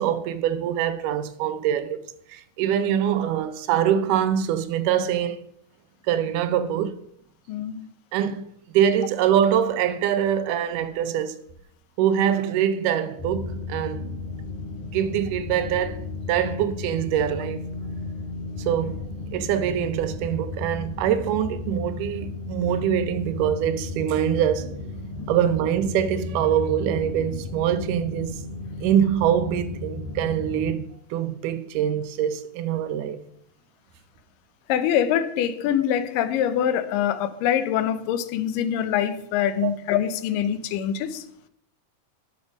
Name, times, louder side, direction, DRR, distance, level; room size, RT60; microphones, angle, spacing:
voice 1, 0.0-2.0 2.3-5.5 6.1-6.9 8.1-8.4 8.7-11.4 12.0-14.2 14.8-17.6 18.6-19.0 19.3-24.8 25.3-28.4 28.8-33.2 39.6-39.7, right 9 dB, 80° right, 2.1 m, -24 dB
voice 2, 7.5-7.9 25.2-25.3 34.7-41.2, left 9 dB, 90° left, 2.4 m, -24 dB
sound 1, 13.2-30.7, left 3 dB, 70° left, 3.3 m, -34 dB
10.5 x 6.2 x 5.0 m
omnidirectional pair, 3.8 m